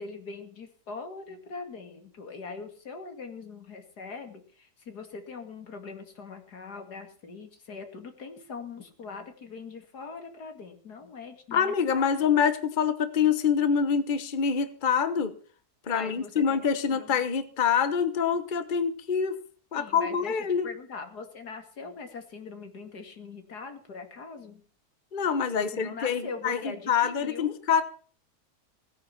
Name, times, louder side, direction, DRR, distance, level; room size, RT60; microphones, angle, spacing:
voice 1, 0.0-12.3 15.9-17.2 19.7-20.4 20.6-24.6 25.5-27.5, left 4 dB, 85° left, 6 dB, 2.9 m, -42 dB
voice 2, 11.5-15.3 15.9-19.4 19.7-20.7 25.1-27.8, left 7 dB, 35° left, 12 dB, 1.2 m, -26 dB
18.0 x 9.8 x 5.8 m, 0.43 s
omnidirectional pair, 1.7 m